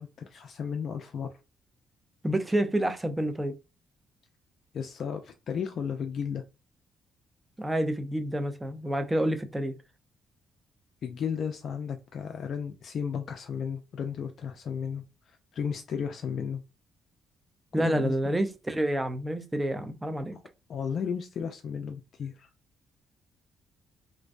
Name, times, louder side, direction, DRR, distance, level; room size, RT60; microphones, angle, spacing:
voice 1, 0.0-1.3 4.7-6.4 11.0-16.6 17.8-18.2 20.7-22.5, left 7 dB, 60° left, 0.3 m, -34 dB
voice 2, 2.2-3.5 7.6-9.7 17.7-20.4, right 1 dB, 15° right, 0.5 m, -28 dB
2.5 x 2.1 x 2.4 m
cardioid pair, 90°, 0 cm